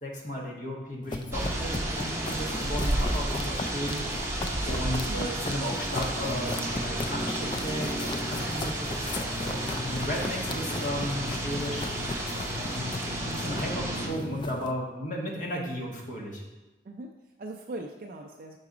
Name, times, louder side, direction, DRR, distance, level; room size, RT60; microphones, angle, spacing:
voice 1, 0.0-11.8 12.5-16.4, equal, 45° left, -1 dB, 1.2 m, -35 dB
sound 1, 1.0-14.7, left 2 dB, 25° left, 0.3 m, -36 dB
sound 2, 1.3-14.1, right 1 dB, 15° right, 0.8 m, -32 dB
voice 2, 16.8-18.6, right 2 dB, 50° right, 1 dB, 0.4 m, -40 dB
5.9 x 4.0 x 4.9 m, 1.1 s
head